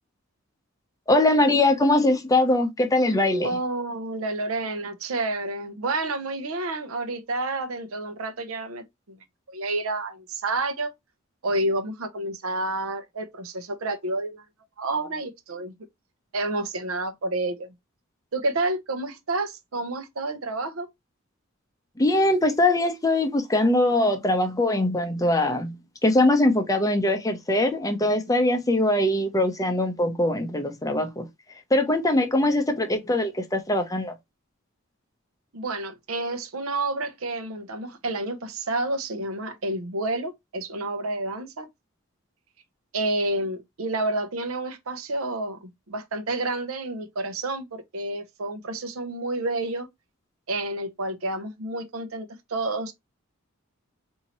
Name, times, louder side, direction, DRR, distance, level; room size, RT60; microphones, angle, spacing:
voice 1, 1.1-3.5 22.0-31.3 31.7-34.1, left 1 dB, 15° left, 0.6 m, -22 dB
voice 2, 3.4-9.2 9.5-10.9 11.4-14.4 14.8-15.7 16.3-17.7 18.3-20.9 35.5-41.7 42.9-49.9 50.5-52.9, right 2 dB, 80° right, 0.7 m, -29 dB
4.3 x 2.7 x 2.8 m
head